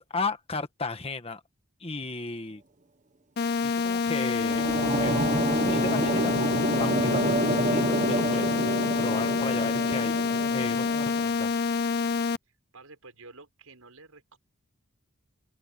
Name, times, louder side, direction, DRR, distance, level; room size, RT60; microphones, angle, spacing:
voice 1, 0.0-1.4 1.8-2.6 3.6-5.2 5.5-6.4 6.8-10.2 10.5-11.6, left 3 dB, 25° left, 1.5 m, -35 dB
sound 1, 3.4-12.4, left 5 dB, 45° left, 0.5 m, -27 dB
sound 2, 4.1-11.3, right 2 dB, 35° right, 1.5 m, -29 dB
voice 2, 12.7-14.4, right 3 dB, 85° right, 5.8 m, -50 dB
open air
head